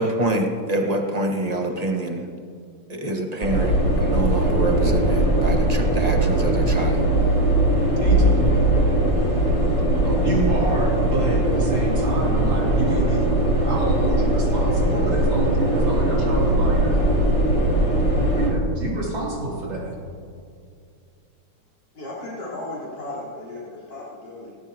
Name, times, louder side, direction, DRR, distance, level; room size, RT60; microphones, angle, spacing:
voice 1, 0.0-2.3 2.9-7.0 10.0-10.4, right 2 dB, 25° right, 2 dB, 1.3 m, -26 dB
sound 1, 3.4-18.5, right 1 dB, 40° left, 4.7 m, -20 dB
voice 2, 8.0-8.5 10.2-13.3 13.6-17.0 18.4-20.0, right 2 dB, 85° right, -4 dB, 4.0 m, -28 dB
voice 3, 21.9-24.6, left 2 dB, 65° left, -7 dB, 4.8 m, -35 dB
18.5 x 18.0 x 2.9 m, 2.3 s
omnidirectional pair, 2.0 m